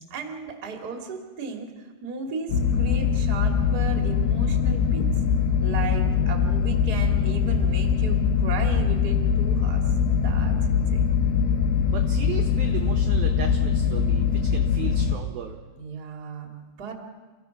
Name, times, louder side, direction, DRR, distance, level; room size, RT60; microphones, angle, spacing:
voice 1, 0.0-5.2 5.6-9.8 10.2-11.1 15.8-16.9, right 4 dB, 35° right, 2 dB, 1.6 m, -35 dB
sound 1, 2.5-15.2, left 7 dB, 75° left, 2.4 m, -22 dB
voice 2, 11.9-15.6, right 8 dB, 80° right, 4 dB, 2.1 m, -36 dB
29.5 x 15.5 x 5.9 m, 1.4 s
omnidirectional pair, 5.8 m